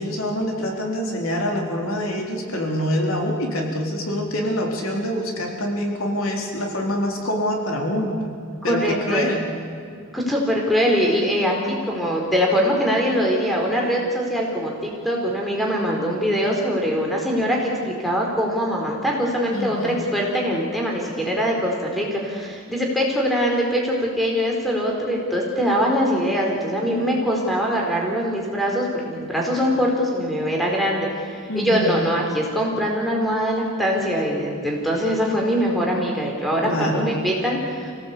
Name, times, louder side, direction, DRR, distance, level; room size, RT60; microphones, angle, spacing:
voice 1, 0.0-8.3 8.6-9.5 19.5-20.0 26.9-27.3 31.5-32.0 36.6-37.1, equal, 85° left, 0 dB, 4.0 m, -25 dB
voice 2, 8.6-9.2 10.1-37.9, equal, ahead, -1 dB, 4.6 m, -22 dB
27.0 x 17.5 x 8.6 m, 2.2 s
head